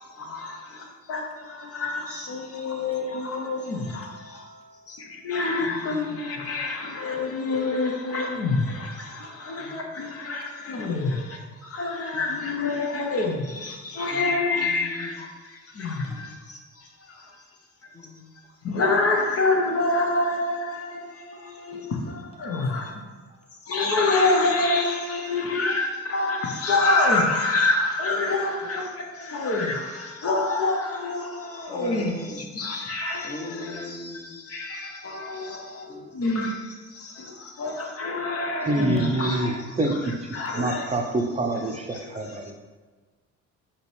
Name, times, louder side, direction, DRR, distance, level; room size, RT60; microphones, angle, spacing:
voice 1, 0.2-4.4 4.9-16.6 17.1-17.2 18.6-22.9 23.7-40.0 40.3-40.8 41.9-42.2, left 2 dB, 50° left, 0.8 m, -27 dB
voice 2, 3.9-5.0 5.6-6.6 9.6-9.9 10.8-11.2 12.1-12.7 13.6-13.7 14.1-15.3 16.0-16.3 17.9-18.3 21.7-21.8 22.4-23.1 25.1-25.4 31.7-32.6 33.2-34.3 35.3-36.2, left 3 dB, 20° left, 0.8 m, -42 dB
voice 3, 38.4-40.1 40.5-42.5, right 2 dB, 20° right, 0.6 m, -26 dB
4.9 x 3.0 x 3.2 m
cardioid pair, 90°, 30 cm